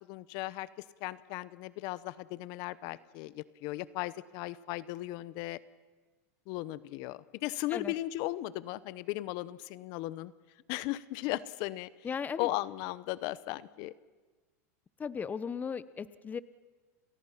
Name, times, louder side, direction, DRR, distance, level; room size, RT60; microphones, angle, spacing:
voice 1, 0.0-5.6 6.5-10.3 10.7-12.1 12.4-13.9, left 17 dB, 55° left, 17 dB, 0.9 m, -37 dB
voice 2, 12.0-12.5 15.0-16.4, left 6 dB, 20° left, 15 dB, 1.0 m, -36 dB
30.0 x 29.0 x 5.8 m, 1.3 s
supercardioid pair, 120°, 8 cm